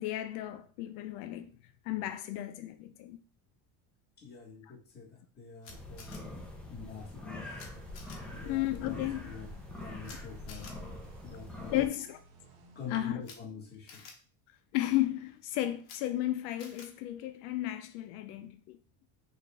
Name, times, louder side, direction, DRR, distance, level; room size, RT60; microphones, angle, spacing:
voice 1, 0.0-1.5 1.8-3.2 4.6-4.7 8.4-9.3 11.7-12.2 12.9-13.2 14.7-18.8, left 14 dB, 85° left, 0.5 m, -34 dB
voice 2, 4.2-6.4 6.7-7.5 8.3-9.5 9.8-10.7 11.2-11.9 12.7-14.0, left 6 dB, 25° left, 1.4 m, -46 dB
Camera, 5.6-6.2 7.6-7.7 7.9-8.2 10.0-10.2 10.5-10.7 13.2-13.3 13.9-14.1 15.8-16.0 16.6-16.9, left 5 dB, 65° left, 1.2 m, -49 dB
sound 1, 5.7-11.9, left 1 dB, 5° left, 0.5 m, -44 dB
sound 2, 7.5-13.1, right 3 dB, 85° right, 1.6 m, -59 dB
5.5 x 2.5 x 3.4 m
cardioid pair, 165°, 41 cm